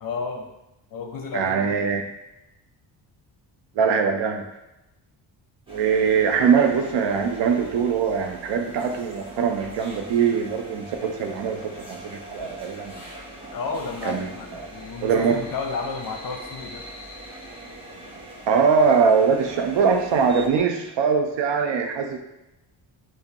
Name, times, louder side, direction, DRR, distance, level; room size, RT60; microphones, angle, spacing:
voice 1, 0.0-0.5 0.9-2.0 13.5-16.8, left 4 dB, 45° left, 3 dB, 0.7 m, -32 dB
voice 2, 1.3-2.0 3.8-4.4 5.7-13.0 14.0-14.7 15.0-15.4 18.5-22.2, right 6 dB, 70° right, 5 dB, 0.6 m, -22 dB
sound 1, 5.7-20.5, right 1 dB, 10° right, 0.9 m, -41 dB
5.0 x 2.1 x 2.8 m, 0.93 s
cardioid pair, 85°, 47 cm